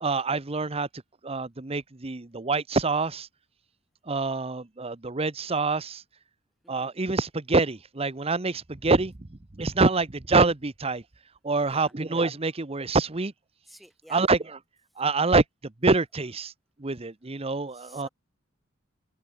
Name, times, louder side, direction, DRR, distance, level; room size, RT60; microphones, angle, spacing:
voice 1, 0.0-0.9 1.2-3.3 4.1-6.0 6.7-11.0 11.4-13.3 14.1-14.4 15.0-16.5 16.8-18.1, right 3 dB, 30° right, 0.9 m, -26 dB
voice 2, 6.6-7.0 9.8-10.0 11.6-11.9 13.7-14.3 17.7-18.1, equal, ahead, 4.7 m, -52 dB
head